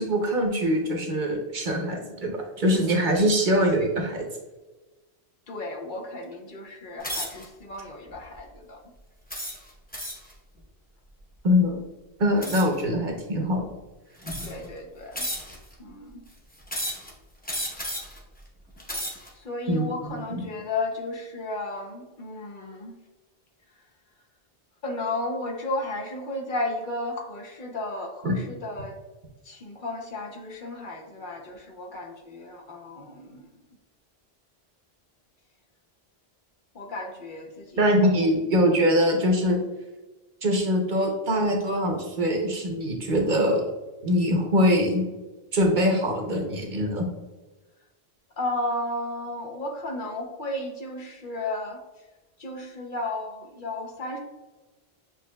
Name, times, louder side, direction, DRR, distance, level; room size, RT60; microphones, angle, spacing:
voice 1, 0.0-4.3 11.4-11.8 12.2-13.7 19.7-19.9 20.3-20.4 28.2-28.4 37.8-39.6 40.4-43.7 44.0-45.1 45.5-47.1, equal, 55° right, 2 dB, 0.9 m, -23 dB
voice 2, 5.5-8.8 14.4-15.3 15.8-16.3 18.9-19.1 19.3-23.0 24.8-29.0 29.4-33.5 36.7-37.9 48.4-51.8 52.4-54.2, left 2 dB, 55° left, 2 dB, 0.8 m, -34 dB
sound 1, 7.0-7.5 8.1-8.4 9.3-10.3 12.4-12.8 13.6-13.7 14.2-14.7 15.1-15.7 16.7-17.1 17.4-18.2 18.7-19.3, equal, 10° left, 0.7 m, -33 dB
7.0 x 3.0 x 2.2 m, 1.2 s
omnidirectional pair, 1.0 m